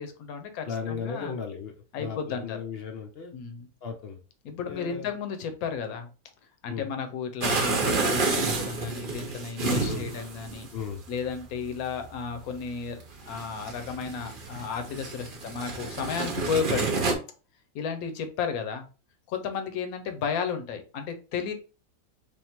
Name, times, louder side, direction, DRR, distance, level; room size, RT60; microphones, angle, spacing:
voice 1, 0.0-1.4 1.9-2.6 3.3-3.7 4.4-6.1 6.6-10.7 11.1-13.0 13.2-17.0 17.7-18.9 19.3-21.5, left 6 dB, 75° left, 7 dB, 1.2 m, -33 dB
voice 2, 0.7-1.7 2.0-3.3 3.8-4.2 4.7-5.1 6.7-6.9 9.6-10.1 10.7-11.0, left 6 dB, 55° left, 3 dB, 0.7 m, -35 dB
sound 1, 7.4-17.1, right 3 dB, 45° right, 0.8 m, -30 dB
3.5 x 2.5 x 4.3 m, 0.35 s
omnidirectional pair, 1.6 m